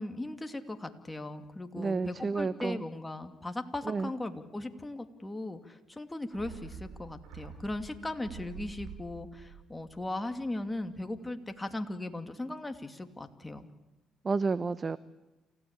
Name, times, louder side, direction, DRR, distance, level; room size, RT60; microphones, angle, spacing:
voice 1, 0.0-13.7, left 2 dB, 15° left, 7 dB, 2.5 m, -38 dB
voice 2, 1.8-2.8 3.9-4.1 14.2-15.0, right 4 dB, 35° right, 15 dB, 0.8 m, -30 dB
sound 1, 6.3-10.9 11.2-11.3, right 7 dB, 80° right, 7.3 m, -48 dB
28.5 x 16.5 x 8.9 m, 1.1 s
supercardioid pair, 75°, 0 cm